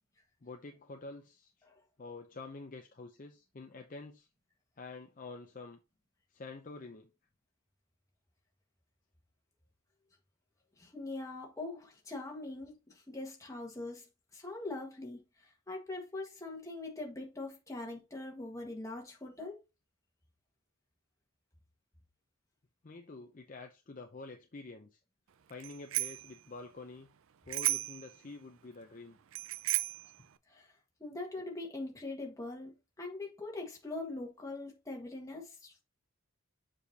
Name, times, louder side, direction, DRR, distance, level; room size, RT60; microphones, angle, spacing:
voice 1, 0.4-1.5 2.0-4.3 4.8-5.8 6.3-7.1 22.8-25.0 25.5-27.1 27.5-29.2, left 3 dB, 35° left, 0.6 m, -48 dB
voice 2, 10.8-19.6 29.7-29.8 30.5-30.7 31.0-35.8, left 2 dB, 15° left, 1.6 m, -42 dB
Bicycle bell, 25.6-26.3 27.5-28.1 29.3-30.1, right 16 dB, 65° right, 0.4 m, -33 dB
7.1 x 5.0 x 2.8 m
head